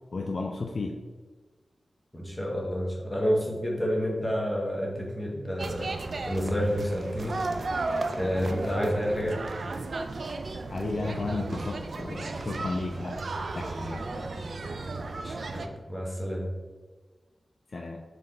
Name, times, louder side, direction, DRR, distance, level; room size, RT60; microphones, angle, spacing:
voice 1, 0.1-1.0 10.7-13.2 13.5-14.0 17.7-18.0, left 3 dB, 55° left, 1 dB, 0.3 m, -33 dB
voice 2, 2.1-7.4 8.1-9.4 15.2-16.5, equal, 10° left, -2 dB, 0.9 m, -29 dB
sound 1, 5.6-15.7, right 3 dB, 60° right, 0.3 m, -34 dB
3.9 x 3.2 x 3.8 m, 1.3 s
wide cardioid pair, 115°, 0 cm